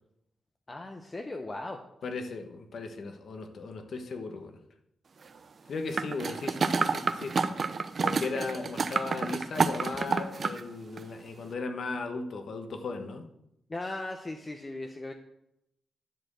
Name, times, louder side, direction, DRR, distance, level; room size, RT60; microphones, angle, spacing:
voice 1, 0.7-1.8 13.7-15.1, left 2 dB, 20° left, 5 dB, 0.7 m, -38 dB
voice 2, 2.0-4.6 5.7-7.4 8.0-13.3, left 3 dB, 55° left, 6 dB, 1.1 m, -36 dB
sound 1, 5.9-10.6 11.0-11.1, right 4 dB, 40° right, 0.5 m, -29 dB
10.5 x 4.4 x 7.8 m, 0.82 s
wide cardioid pair, 140°, 0 cm